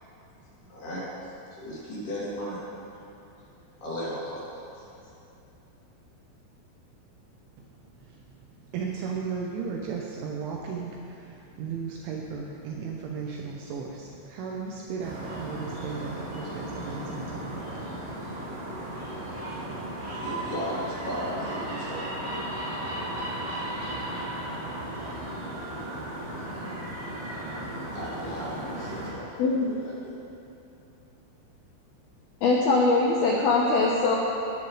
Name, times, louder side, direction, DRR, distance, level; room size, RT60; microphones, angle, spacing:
voice 1, 0.6-2.6 3.8-4.5 4.7-5.1 20.2-22.1 27.9-30.2, equal, 55° left, -9 dB, 4.8 m, -36 dB
voice 2, 8.0-17.6, right 5 dB, 80° right, -1 dB, 3.2 m, -35 dB
sound 1, 15.0-29.1, right 1 dB, 60° right, 5.6 m, -35 dB
voice 3, 32.4-34.2, left 3 dB, 85° left, -3 dB, 2.2 m, -22 dB
19.0 x 10.0 x 3.3 m, 2.8 s
omnidirectional pair, 5.8 m